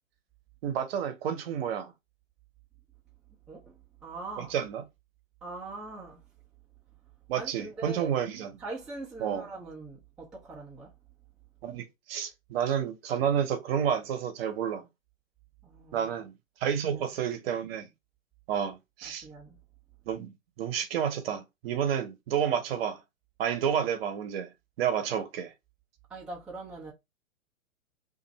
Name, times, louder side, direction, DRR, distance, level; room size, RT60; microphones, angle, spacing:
voice 1, 0.6-1.9 4.5-4.8 7.3-8.5 9.2-9.4 11.6-14.9 15.9-16.3 16.6-17.9 18.5-19.2 20.1-23.0 23.4-24.5 24.8-25.5, right 8 dB, 50° right, 0.9 m, -30 dB
voice 2, 3.5-4.5 5.4-6.3 7.3-8.1 8.6-11.0 15.6-16.2 16.7-17.0 19.2-19.6 26.1-26.9, right 2 dB, ahead, 0.5 m, -42 dB
2.6 x 2.6 x 4.0 m
hypercardioid pair, 125°, 40 cm